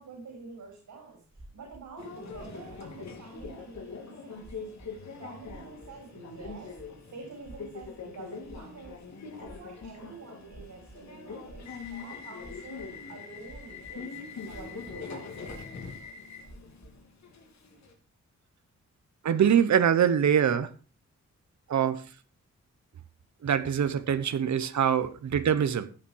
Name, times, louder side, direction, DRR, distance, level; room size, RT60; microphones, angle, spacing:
voice 1, 0.0-4.5 5.1-6.8 7.1-8.9 9.3-14.1 14.5-15.6, right 4 dB, 90° right, 4.4 m, -47 dB
sound 1, 1.3-1.9 2.2-2.8 3.3-3.9 4.4-5.1 5.4-7.0 7.4-7.9 8.2-9.0 9.4-9.9 10.5-11.0 11.4-12.0 12.4-13.0 13.4-13.9 14.2-15.0 15.4-15.9 16.4-17.0, right 1 dB, 20° right, 4.4 m, -50 dB
Subway metro underground, 2.0-17.9, left 5 dB, 65° left, 2.8 m, -43 dB
voice 2, 19.2-20.7 21.7-22.0 23.4-25.9, right 8 dB, 70° right, 1.1 m, -24 dB
15.0 x 8.8 x 4.8 m
wide cardioid pair, 145°, 29 cm